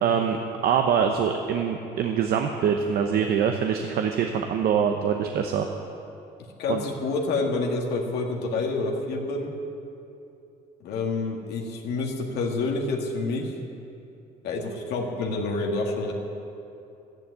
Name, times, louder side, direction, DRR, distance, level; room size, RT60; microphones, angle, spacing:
voice 1, 0.0-5.7 6.7-6.8, right 7 dB, 65° right, 4 dB, 0.9 m, -24 dB
voice 2, 6.6-9.5 10.8-13.5 14.4-16.1, left 3 dB, 80° left, 0 dB, 1.9 m, -28 dB
12.5 x 10.5 x 8.0 m, 2.7 s
cardioid pair, 110°, 17 cm